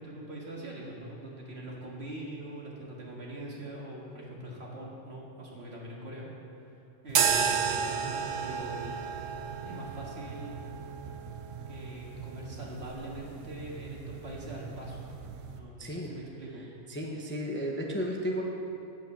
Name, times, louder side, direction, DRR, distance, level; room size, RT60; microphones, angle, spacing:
voice 1, 0.0-6.3 6.6-8.9 9.6-10.6 11.7-15.0 15.5-16.7, right 1 dB, 60° right, -3 dB, 2.1 m, -43 dB
sound 1, 7.1-15.6, right 6 dB, 85° right, 1.1 m, -33 dB
voice 2, 15.8-16.1 16.9-18.4, equal, 10° left, 0 dB, 0.7 m, -33 dB
8.5 x 7.8 x 7.1 m, 2.9 s
omnidirectional pair, 1.3 m